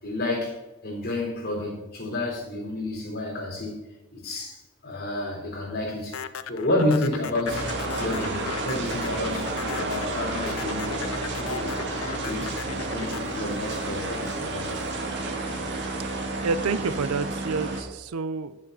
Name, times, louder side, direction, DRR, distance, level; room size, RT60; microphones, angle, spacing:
voice 1, 0.0-6.2 6.5-12.6 12.9-14.8, left 1 dB, 45° left, -1 dB, 3.7 m, -30 dB
sound 1, 6.1-14.5, left 7 dB, 65° left, 0.5 m, -37 dB
sound 2, 7.5-17.8, right 2 dB, 55° right, 1.8 m, -31 dB
voice 2, 16.4-18.6, right 4 dB, 80° right, 15 dB, 0.6 m, -28 dB
9.8 x 7.0 x 5.5 m, 1.1 s
head